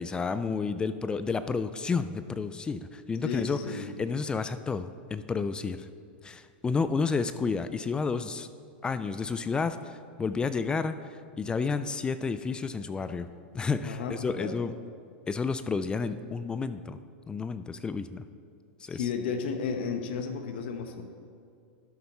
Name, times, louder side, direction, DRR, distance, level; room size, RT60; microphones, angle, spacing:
voice 1, 0.0-5.9 6.2-8.5 8.8-11.0 11.4-13.3 13.5-14.7 15.3-17.0 17.3-18.2 18.8-19.0, left 4 dB, 15° left, 12 dB, 0.3 m, -31 dB
voice 2, 3.2-3.9 13.8-14.5 18.9-21.0, left 6 dB, 70° left, 6 dB, 1.0 m, -33 dB
12.0 x 6.9 x 4.2 m, 2.3 s
hypercardioid pair, 125°, 6 cm